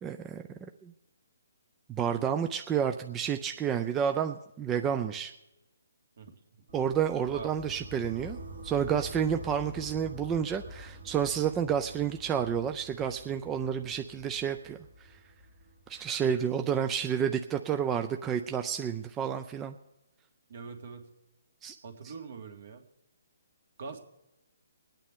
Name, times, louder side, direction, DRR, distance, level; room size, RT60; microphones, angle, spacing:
voice 1, 0.0-0.4 0.8-0.9 1.9-5.3 6.7-8.4 8.6-14.8 15.9-19.8 21.6-21.7, right 8 dB, 15° right, 6 dB, 0.4 m, -30 dB
sound 1, 6.7-16.6, equal, 90° right, 2.0 m, -47 dB
voice 2, 20.5-21.1 21.8-22.8 23.8-24.0, right 5 dB, 60° right, 5 dB, 2.1 m, -43 dB
24.5 x 9.0 x 3.7 m, 0.98 s
hypercardioid pair, 155°, 0 cm